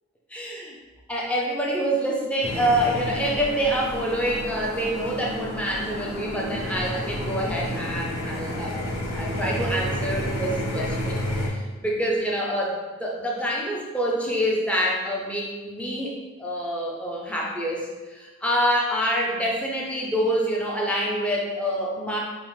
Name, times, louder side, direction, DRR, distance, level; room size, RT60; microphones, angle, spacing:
voice 1, 0.3-0.8 1.1-22.2, equal, 5° left, -2 dB, 0.5 m, -26 dB
sound 1, 2.4-11.5, equal, 70° left, 0.8 m, -30 dB
5.4 x 2.1 x 3.1 m, 1.3 s
head